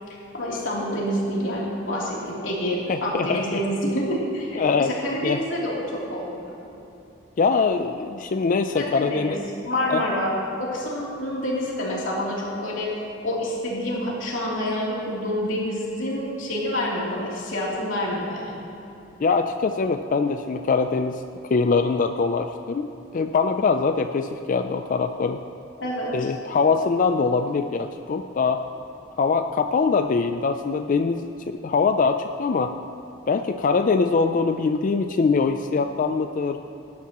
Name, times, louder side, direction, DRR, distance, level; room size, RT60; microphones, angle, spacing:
voice 1, 0.3-6.5 8.7-9.4 9.6-10.3 10.6-12.9 13.2-18.6 25.8-26.1, equal, 80° left, -5 dB, 3.1 m, -27 dB
voice 2, 2.9-3.6 4.5-5.0 5.2-5.4 7.4-9.4 9.9-10.0 19.2-21.2 21.5-22.9 23.1-25.4 26.1-28.7 29.2-32.8 33.3-36.6, left 4 dB, 45° left, 8 dB, 0.4 m, -23 dB
18.0 x 11.5 x 3.0 m, 3.0 s
head